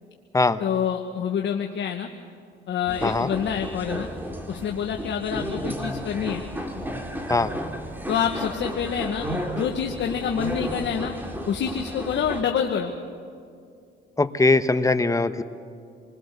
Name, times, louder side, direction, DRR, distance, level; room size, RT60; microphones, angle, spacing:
voice 1, 0.6-2.1 2.7-4.1 4.5-6.4 8.1-11.1 11.5-12.9, left 8 dB, 65° left, 3 dB, 1.4 m, -27 dB
sound 1, 2.9-12.4, equal, 10° right, 2.7 m, -33 dB
voice 2, 14.2-15.4, left 3 dB, 15° left, 10 dB, 1.1 m, -21 dB
27.0 x 20.5 x 6.7 m, 2.3 s
cardioid pair, 90°, 20 cm